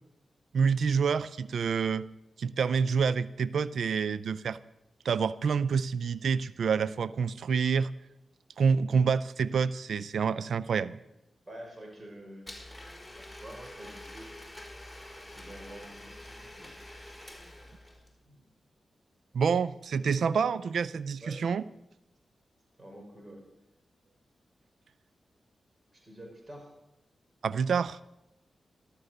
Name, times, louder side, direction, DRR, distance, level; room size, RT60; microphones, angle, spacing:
voice 1, 0.5-2.0 2.4-4.6 5.0-7.9 8.6-11.0 19.3-21.6 27.4-28.0, right 6 dB, 75° right, 18 dB, 0.4 m, -27 dB
voice 2, 11.5-12.5 13.2-14.3 15.3-16.7 18.3-18.5 21.2-21.4 22.8-23.4 25.9-26.7, right 1 dB, 35° right, 1 dB, 5.9 m, -47 dB
Domestic sounds home sounds, 12.5-18.1, left 1 dB, 5° left, 4.3 m, -47 dB
13.5 x 13.0 x 6.6 m, 0.90 s
supercardioid pair, 40°, 0 cm